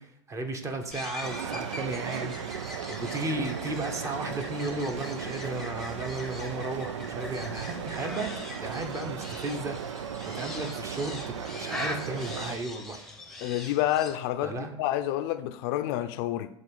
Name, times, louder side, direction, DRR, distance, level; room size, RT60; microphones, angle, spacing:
voice 1, 0.0-2.6 2.9-8.3 8.6-13.1 14.4-14.8, right 2 dB, 20° right, 0.9 m, -34 dB
sound 1, 0.9-14.2, left 2 dB, 5° left, 0.8 m, -42 dB
sound 2, 1.2-12.6, right 8 dB, 90° right, 0.5 m, -37 dB
voice 2, 13.4-16.5, left 13 dB, 55° left, 0.5 m, -29 dB
7.6 x 3.1 x 5.4 m
hypercardioid pair, 110°, 15 cm